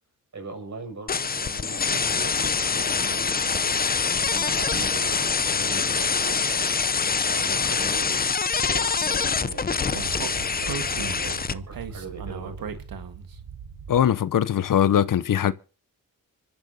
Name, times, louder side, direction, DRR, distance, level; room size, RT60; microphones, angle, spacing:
voice 1, 0.3-3.7 4.2-6.7 7.3-8.3 8.6-12.7, right 3 dB, 50° right, 6.5 m, -40 dB
sound 1, 1.1-11.5, left 5 dB, 25° left, 0.6 m, -25 dB
Speech, 9.2-14.1, right 6 dB, 75° right, 1.6 m, -37 dB
voice 2, 13.9-15.5, left 10 dB, 65° left, 0.7 m, -21 dB
25.5 x 12.5 x 2.8 m
cardioid pair, 65°, 35 cm